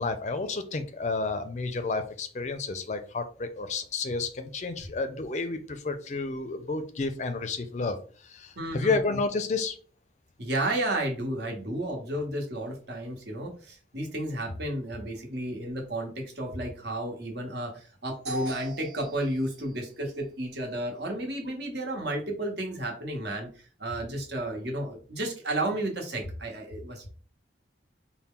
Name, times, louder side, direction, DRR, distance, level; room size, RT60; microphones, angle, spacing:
voice 1, 0.0-9.8, left 3 dB, 40° left, 9 dB, 0.4 m, -31 dB
voice 2, 8.6-9.0 10.4-23.5 23.8-27.1, right 1 dB, 65° right, 1 dB, 1.1 m, -32 dB
4.2 x 2.1 x 3.7 m, 0.41 s
head